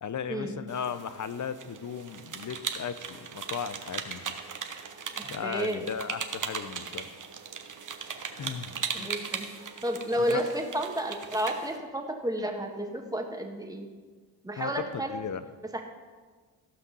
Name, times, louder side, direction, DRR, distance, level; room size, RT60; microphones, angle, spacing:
voice 1, 0.0-4.2 5.3-7.1 8.4-9.1 10.2-10.4 14.6-15.4, left 7 dB, 40° left, 13 dB, 0.7 m, -36 dB
sound 1, 0.7-11.8, right 6 dB, 45° right, 1.2 m, -38 dB
voice 2, 5.2-5.9 8.9-9.5 9.8-13.9 14.4-15.1 15.7-15.8, right 1 dB, 10° right, 2 dB, 1.7 m, -31 dB
14.5 x 5.8 x 5.5 m, 1.5 s
supercardioid pair, 65°, 44 cm